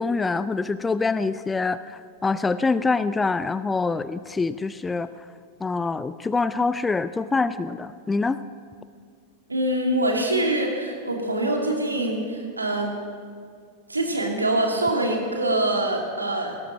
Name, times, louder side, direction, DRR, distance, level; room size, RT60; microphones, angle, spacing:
voice 1, 0.0-5.1 5.6-8.4, left 4 dB, 15° left, 15 dB, 0.4 m, -25 dB
voice 2, 9.5-13.0 13.9-16.5, right 1 dB, 80° right, 1 dB, 2.5 m, -24 dB
18.0 x 13.5 x 6.1 m, 2.2 s
figure-of-eight pair, 90°, 0 cm